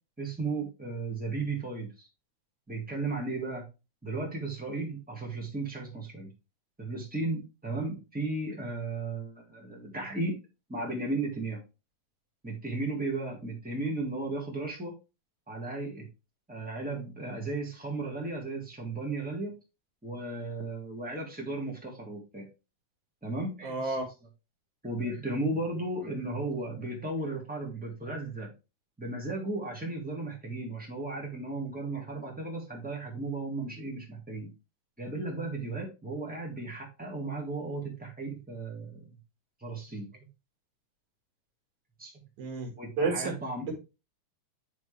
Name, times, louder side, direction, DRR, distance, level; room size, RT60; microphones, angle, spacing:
voice 1, 0.2-2.1 2.7-3.6 4.0-6.3 6.8-10.3 10.7-11.6 12.4-14.9 15.5-16.1 16.5-19.5 20.0-22.4 23.2-24.1 24.8-28.5 29.0-34.5 35.0-39.1 39.6-40.3 42.0-42.2 42.8-43.7, right 2 dB, 5° right, -2 dB, 0.7 m, -35 dB
voice 2, 23.6-24.0 42.4-43.3, right 3 dB, 65° right, 2 dB, 3.1 m, -31 dB
9.2 x 3.7 x 3.3 m, 0.29 s
omnidirectional pair, 3.8 m